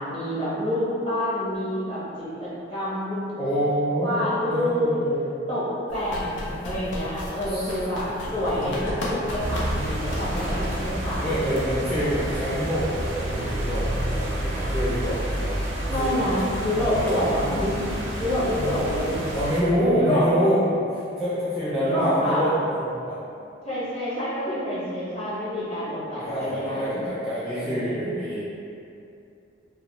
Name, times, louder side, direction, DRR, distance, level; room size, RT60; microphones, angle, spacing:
voice 1, 0.0-3.2 4.0-4.9 5.5-11.5 15.9-19.2 19.9-20.3 21.7-22.5 23.6-27.0 27.5-28.1, left 1 dB, 30° left, -10 dB, 0.7 m, -27 dB
voice 2, 3.4-5.2 7.5-7.7 8.5-8.7 11.2-15.5 16.0-16.3 16.8-17.2 19.3-23.2 26.2-28.4, equal, ahead, -13 dB, 0.4 m, -26 dB
sound 1, 5.9-10.9, left 1 dB, 70° left, 0.5 m, -35 dB
sound 2, 8.2-13.9, equal, 90° left, 0.8 m, -38 dB
sound 3, 9.4-19.6, right 1 dB, 65° right, 0.5 m, -29 dB
2.3 x 2.2 x 2.9 m, 2.6 s
head